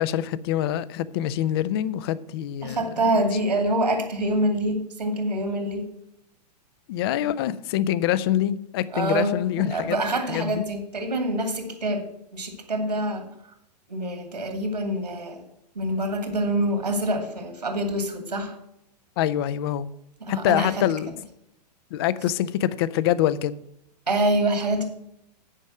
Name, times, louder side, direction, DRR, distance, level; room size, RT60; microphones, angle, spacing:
voice 1, 0.0-2.8 3.0-3.2 6.9-10.0 10.3-10.6 19.2-19.9 20.3-21.1 21.9-23.6, left 12 dB, 35° left, 0.5 m, -25 dB
voice 2, 2.6-5.9 7.2-7.3 8.9-12.0 12.3-13.2 13.9-15.4 15.8-18.5 20.2-20.7 24.1-24.8, right 1 dB, 75° right, 2.5 m, -26 dB
9.9 x 5.3 x 7.5 m
figure-of-eight pair, 105°, 21 cm